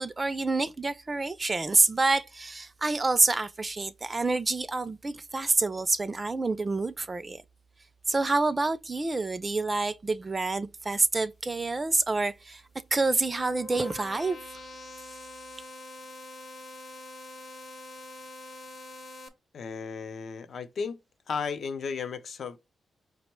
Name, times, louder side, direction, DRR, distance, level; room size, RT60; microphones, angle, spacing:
voice 1, 0.0-7.4 8.1-12.6 12.9-14.4, right 3 dB, 25° right, 0.3 m, -27 dB
sound 1, 12.8-19.3, left 2 dB, 45° left, 0.9 m, -45 dB
voice 2, 19.5-21.0 21.3-22.6, left 5 dB, 60° left, 0.5 m, -34 dB
5.2 x 2.1 x 4.3 m
wide cardioid pair, 120°, 0 cm